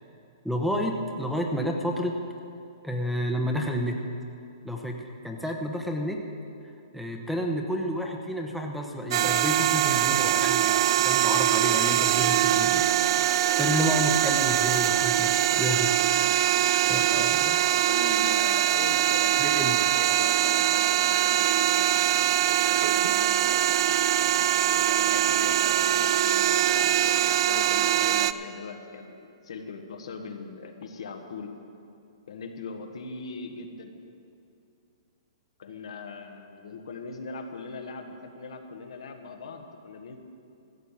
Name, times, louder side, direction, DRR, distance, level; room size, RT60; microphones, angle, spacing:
voice 1, 0.4-2.1 2.8-4.0 4.6-6.2 6.9-12.8 13.6-15.9 16.9-17.6 19.4-19.8, equal, ahead, 2 dB, 0.9 m, -30 dB
sound 1, 9.1-28.3, right 12 dB, 55° right, 0.4 m, -23 dB
voice 2, 17.1-22.0 22.7-23.5 24.6-31.5 32.3-33.9 35.6-40.2, left 4 dB, 80° left, 5 dB, 1.4 m, -40 dB
14.0 x 7.9 x 7.4 m, 2.5 s
hypercardioid pair, 145°, 3 cm